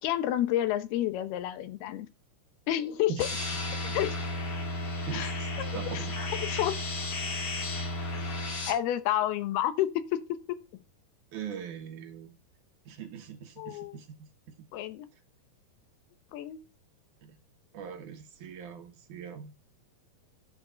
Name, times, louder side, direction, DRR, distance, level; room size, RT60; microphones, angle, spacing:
voice 1, 0.0-2.1 2.7-3.3 3.9-4.2 5.1-6.1 6.4-6.8 8.2-8.4 8.7-9.9 13.6-14.0 14.7-15.1 16.3-16.6, left 12 dB, 85° left, 2.9 m, -30 dB
sound 1, 3.2-8.7, left 2 dB, 50° left, 3.8 m, -33 dB
voice 2, 3.2-3.5 3.9-4.0 5.1-6.2 11.3-12.3 12.9-14.3 14.6-14.7 17.2-17.4 17.7-19.5, right 7 dB, 65° right, 2.3 m, -42 dB
10.5 x 5.1 x 6.2 m
omnidirectional pair, 4.4 m